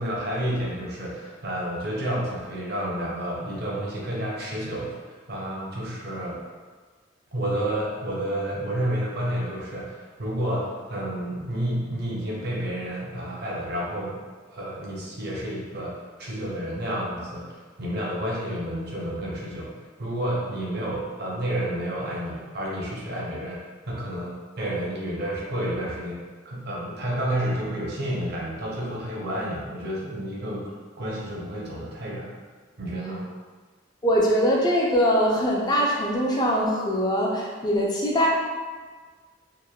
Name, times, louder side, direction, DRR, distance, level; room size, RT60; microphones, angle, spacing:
voice 1, 0.0-5.0 5.3-6.4 7.3-14.2 14.5-19.7 20.0-26.2 26.4-30.7 31.0-32.3 32.8-33.3, right 1 dB, 55° right, -4 dB, 0.6 m, -30 dB
voice 2, 34.0-38.3, equal, 20° left, -2 dB, 0.4 m, -22 dB
2.9 x 2.1 x 2.2 m, 1.5 s
head